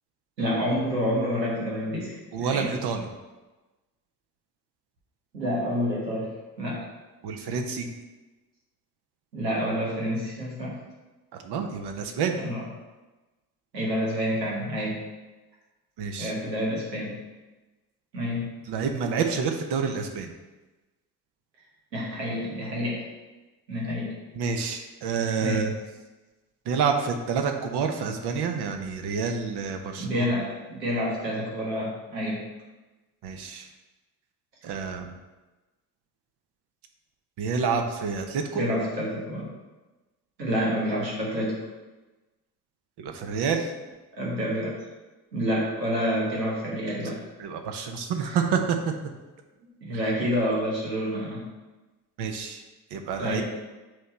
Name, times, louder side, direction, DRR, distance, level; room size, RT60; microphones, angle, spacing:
voice 1, 0.4-2.7 5.3-6.3 6.6-6.8 9.3-10.7 12.4-12.6 13.7-15.0 16.2-17.2 18.1-18.5 21.9-23.0 23.7-24.1 25.4-25.7 30.0-32.4 38.5-39.5 40.4-41.5 44.2-44.7 45.3-47.2 48.2-48.4 49.8-51.4 53.2-53.4, equal, 90° right, -5 dB, 1.4 m, -28 dB
voice 2, 2.3-3.1 7.2-7.9 11.4-12.4 16.0-16.3 18.7-20.3 24.3-25.7 26.6-30.3 33.2-33.7 34.6-35.1 37.4-38.6 43.0-43.7 47.4-48.8 49.9-50.0 52.2-52.6 52.9-53.4, right 6 dB, 55° right, 5 dB, 1.0 m, -28 dB
7.7 x 3.2 x 4.3 m, 1.2 s
figure-of-eight pair, 45°, 49 cm